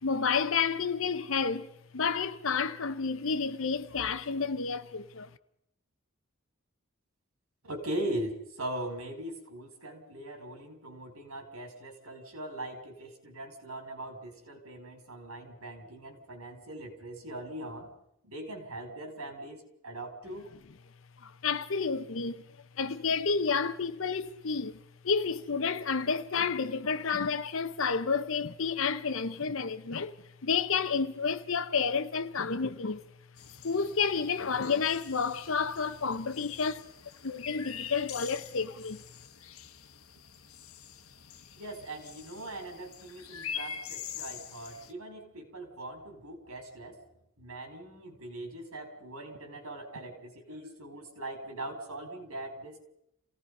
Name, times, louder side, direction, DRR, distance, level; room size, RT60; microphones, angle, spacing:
voice 1, 0.0-5.3 21.2-22.5 22.8-24.8 25.0-30.1 30.4-33.0 33.6-36.8 37.2-39.0, left 5 dB, 65° left, 0.8 m, -30 dB
voice 2, 7.6-17.9 18.2-20.5 41.6-47.0 47.4-52.8, right 1 dB, 90° right, 4.9 m, -40 dB
sound 1, 33.4-44.9, left 8 dB, 90° left, 1.3 m, -45 dB
28.5 x 17.5 x 5.4 m
head